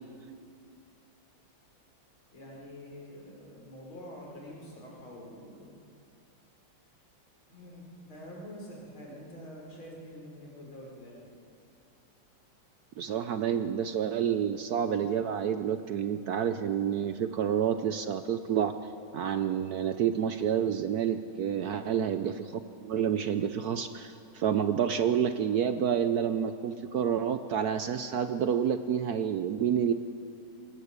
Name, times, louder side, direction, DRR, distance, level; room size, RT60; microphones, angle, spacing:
voice 1, 2.3-5.8 7.5-11.3 21.7-22.0, equal, 85° left, -2 dB, 5.7 m, -46 dB
voice 2, 13.0-18.7 19.1-29.9, right 8 dB, 65° right, 10 dB, 1.0 m, -29 dB
21.0 x 17.0 x 8.2 m, 2.4 s
omnidirectional pair, 2.2 m